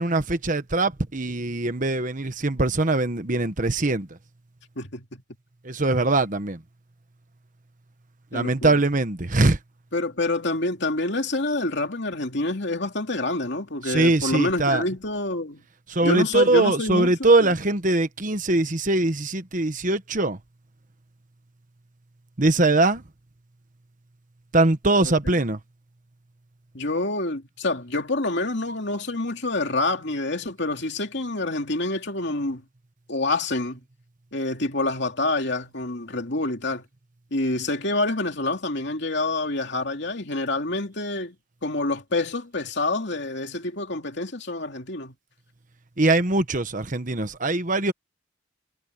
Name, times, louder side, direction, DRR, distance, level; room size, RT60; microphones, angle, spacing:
voice 1, 0.0-4.1 5.6-6.6 8.3-9.6 13.8-14.9 15.9-20.4 22.4-23.0 24.5-25.6 46.0-47.9, right 2 dB, 40° right, 1.2 m, -22 dB
voice 2, 4.8-5.2 8.3-8.8 9.9-15.6 16.0-17.5 25.2-25.4 26.7-32.6 33.1-33.8 34.3-36.9 37.3-41.3 41.6-45.1, left 2 dB, 60° left, 2.9 m, -27 dB
head